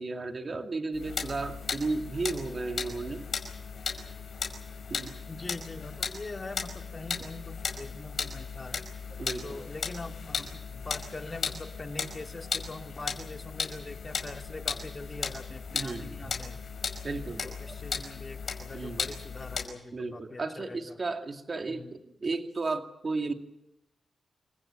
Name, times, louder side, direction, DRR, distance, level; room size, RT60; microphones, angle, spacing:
voice 1, 0.0-3.2 4.9-5.1 9.2-9.6 15.7-16.4 17.0-17.7 18.7-19.0 19.9-23.3, right 3 dB, 45° right, 5 dB, 2.3 m, -34 dB
sound 1, 0.9-19.7, left 5 dB, 65° left, 5.2 m, -36 dB
voice 2, 5.3-8.9 9.4-16.6 17.4-21.0 21.7-21.9, left 2 dB, 35° left, 5 dB, 2.4 m, -43 dB
27.5 x 15.0 x 8.8 m, 0.84 s
cardioid pair, 60°, 0 cm